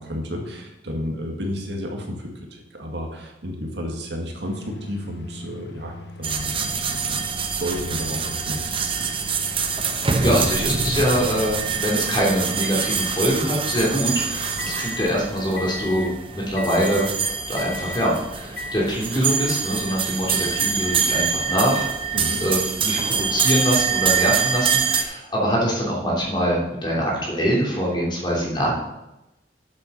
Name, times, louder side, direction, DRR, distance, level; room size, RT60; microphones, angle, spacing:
voice 1, 0.0-9.1 22.1-22.4, equal, 65° right, 1 dB, 2.0 m, -32 dB
sound 1, 4.4-15.1 15.6-16.1 16.6-17.1 17.6-18.1 18.6-18.8, left 2 dB, 65° left, 0.8 m, -38 dB
sound 2, 6.2-25.0, right 6 dB, 30° right, 0.8 m, -25 dB
voice 2, 10.2-16.1 16.3-17.1 17.5-21.9 22.4-28.7, equal, 25° left, -3 dB, 3.0 m, -23 dB
8.5 x 7.0 x 6.6 m, 0.93 s
head